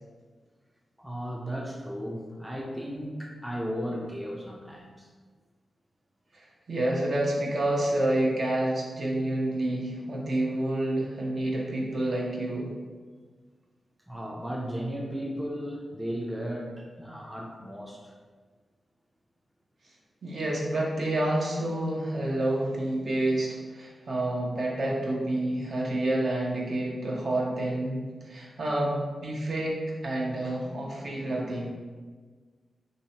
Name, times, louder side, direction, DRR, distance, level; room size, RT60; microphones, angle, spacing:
voice 1, 1.0-5.1 14.1-18.1, equal, 5° right, -1 dB, 0.4 m, -35 dB
voice 2, 6.3-12.7 20.2-31.7, right 1 dB, 60° right, -3 dB, 0.8 m, -29 dB
2.8 x 2.7 x 4.2 m, 1.5 s
wide cardioid pair, 95°, 0 cm